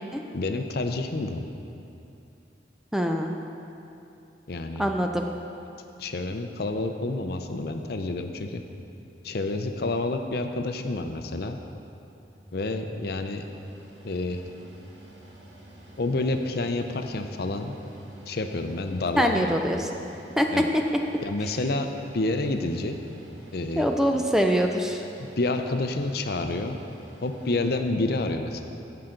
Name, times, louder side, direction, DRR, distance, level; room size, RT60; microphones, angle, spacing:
voice 1, 0.3-1.5 4.5-4.9 6.0-8.6 9.2-11.6 12.5-13.4 14.0-14.4 16.0-17.8 18.3-19.5 20.5-20.6 21.2-21.9 22.1-23.0 23.5-23.9 25.4-26.8 27.2-28.6, left 2 dB, 55° left, 6 dB, 0.6 m, -28 dB
voice 2, 2.9-3.3 4.8-5.2 19.2-19.9 20.4-20.6 23.8-25.0, equal, 5° right, 3 dB, 0.4 m, -23 dB
Mechanical fan, 12.3-27.7, right 1 dB, 70° right, 1.7 m, -49 dB
16.5 x 5.8 x 3.8 m, 2.8 s
head